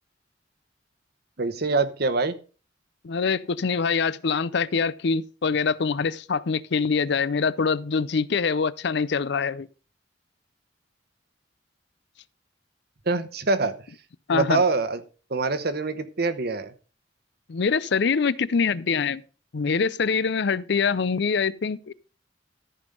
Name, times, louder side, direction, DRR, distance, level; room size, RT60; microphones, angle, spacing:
voice 1, 1.4-2.4 13.1-13.7 14.3-15.0 15.3-16.7, right 3 dB, 55° right, 1.0 m, -24 dB
voice 2, 3.0-9.7 14.3-14.6 17.5-19.2 19.5-21.9, left 5 dB, 65° left, 0.5 m, -24 dB
14.0 x 5.3 x 5.3 m
head